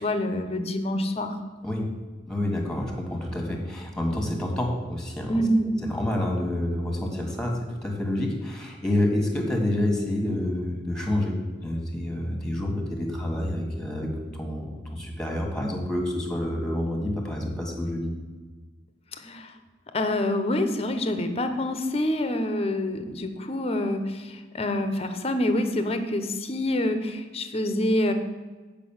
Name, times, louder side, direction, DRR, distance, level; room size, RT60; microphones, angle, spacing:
voice 1, 0.0-1.4 5.3-5.7 19.2-19.5 19.9-28.1, left 1 dB, 35° left, 8 dB, 0.9 m, -26 dB
voice 2, 2.3-5.4 5.8-14.1 14.4-18.1, left 1 dB, 5° left, 1 dB, 1.7 m, -28 dB
8.4 x 5.2 x 7.3 m, 1.3 s
head